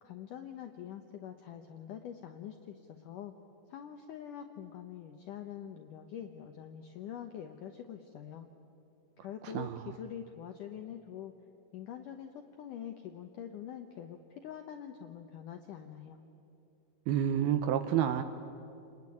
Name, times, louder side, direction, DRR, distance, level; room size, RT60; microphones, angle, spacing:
voice 1, 0.0-3.3 3.7-8.5 9.2-11.3 11.7-16.2, left 9 dB, 80° left, 6 dB, 1.9 m, -45 dB
voice 2, 9.4-9.9 17.1-18.2, right 10 dB, 75° right, 9 dB, 2.3 m, -29 dB
29.0 x 20.5 x 9.8 m, 2.7 s
omnidirectional pair, 5.2 m